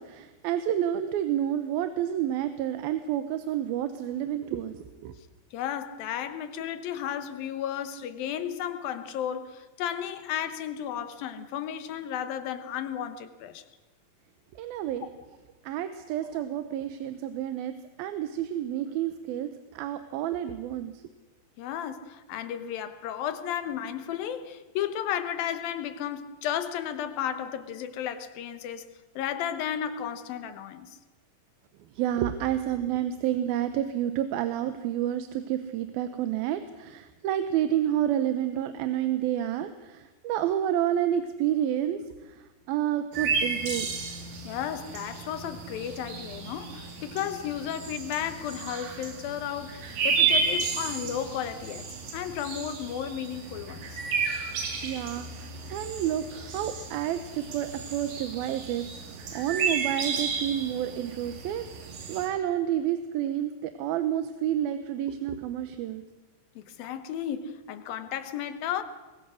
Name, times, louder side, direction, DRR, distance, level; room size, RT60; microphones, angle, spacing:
voice 1, 0.0-5.1 14.6-15.1 15.6-21.0 31.9-43.9 54.8-66.0, right 11 dB, 90° right, 10 dB, 2.8 m, -30 dB
voice 2, 5.5-13.6 16.3-16.4 21.6-31.0 44.4-51.9 52.1-54.0 66.6-68.8, left 9 dB, 80° left, 10 dB, 2.9 m, -33 dB
sound 1, 43.1-62.3, right 5 dB, 70° right, 4.4 m, -32 dB
24.5 x 22.0 x 6.4 m, 1.2 s
omnidirectional pair, 4.1 m